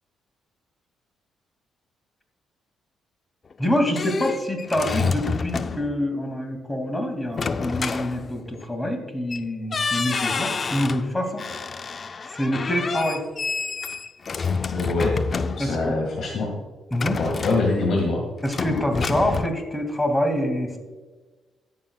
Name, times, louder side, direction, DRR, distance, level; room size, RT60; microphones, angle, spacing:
sound 1, 3.5-6.0 7.3-8.7 9.3-9.4 9.7-11.1 11.4-15.9 16.9-18.1 18.5-19.5, left 5 dB, 40° left, 0.4 m, -28 dB
voice 1, 3.6-11.4 12.3-13.2 15.6-15.9 16.9-17.2 18.4-20.8, left 1 dB, 10° left, 4 dB, 2.3 m, -26 dB
voice 2, 14.7-15.1 15.6-16.5 17.2-18.2, left 3 dB, 60° left, -1 dB, 1.9 m, -24 dB
20.5 x 7.1 x 2.3 m, 1.3 s
cardioid pair, 90°, 0 cm